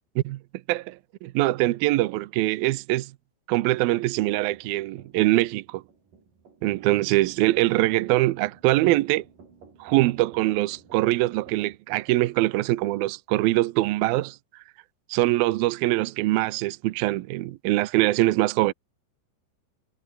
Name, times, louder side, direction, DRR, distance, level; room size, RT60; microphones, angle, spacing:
voice 1, 0.7-3.1 3.5-5.8 6.6-9.2 9.8-14.4 15.1-18.7, right 18 dB, 80° right, 2.2 m, -23 dB
sound 1, 4.3-11.8, right 5 dB, 50° right, 6.8 m, -53 dB
omnidirectional pair, 5.1 m